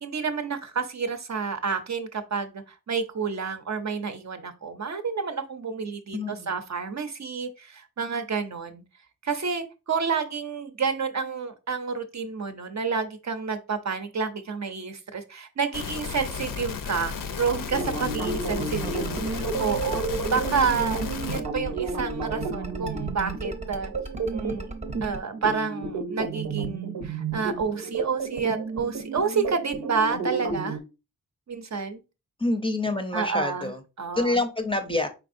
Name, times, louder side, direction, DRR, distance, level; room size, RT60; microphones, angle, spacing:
voice 1, 0.0-8.8 9.2-19.1 19.4-21.0 21.3-23.9 24.3-24.7 25.0-30.8 31.5-32.0 33.1-33.7 34.0-34.3, right 5 dB, 50° right, 0.6 m, -29 dB
voice 2, 6.1-6.6 18.8-19.3 32.4-33.8 34.1-35.1, left 2 dB, 15° left, 0.5 m, -27 dB
sound 1, 15.7-21.4, left 6 dB, 65° left, 0.5 m, -34 dB
sound 2, 17.7-30.8, right 4 dB, 85° right, 0.8 m, -32 dB
sound 3, 18.3-25.2, right 1 dB, 20° right, 0.8 m, -36 dB
4.6 x 3.4 x 2.5 m
wide cardioid pair, 80°, 35 cm